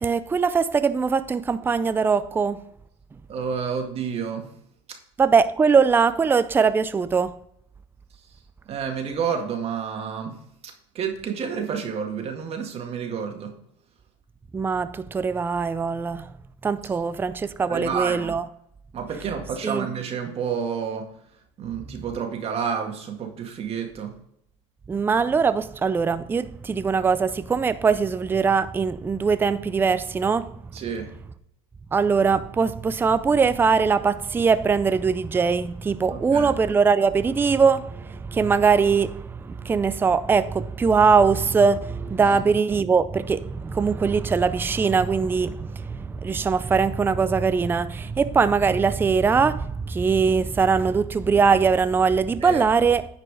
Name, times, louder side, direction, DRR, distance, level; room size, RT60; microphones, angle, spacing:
voice 1, 0.0-2.6 5.2-7.4 14.5-16.3 16.6-18.4 19.6-19.9 24.9-30.6 31.9-53.1, right 5 dB, 15° right, 0.4 m, -21 dB
voice 2, 3.3-4.5 8.7-10.4 10.6-13.5 17.7-18.3 18.9-21.0 21.6-24.1 30.7-31.1 36.1-36.5 42.2-42.4 52.4-52.6, right 6 dB, 40° right, 1.9 m, -29 dB
9.9 x 4.9 x 4.9 m
supercardioid pair, 110°, 16 cm